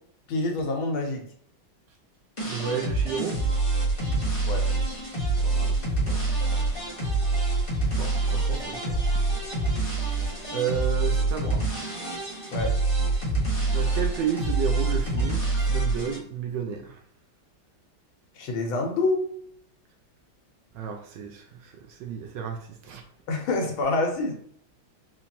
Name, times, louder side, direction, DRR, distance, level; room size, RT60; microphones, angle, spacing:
voice 1, 0.3-1.2 4.4-4.7 12.5-12.8 18.4-19.2 23.3-24.3, left 2 dB, 80° left, 2 dB, 1.6 m, -26 dB
sound 1, 2.4-16.2, right 2 dB, 25° left, 0.8 m, -26 dB
voice 2, 2.5-3.4 5.4-6.2 7.8-9.0 10.5-11.7 13.7-17.0 20.7-23.0, right 7 dB, 75° right, 5 dB, 1.2 m, -32 dB
4.4 x 2.6 x 2.7 m, 0.63 s
omnidirectional pair, 2.2 m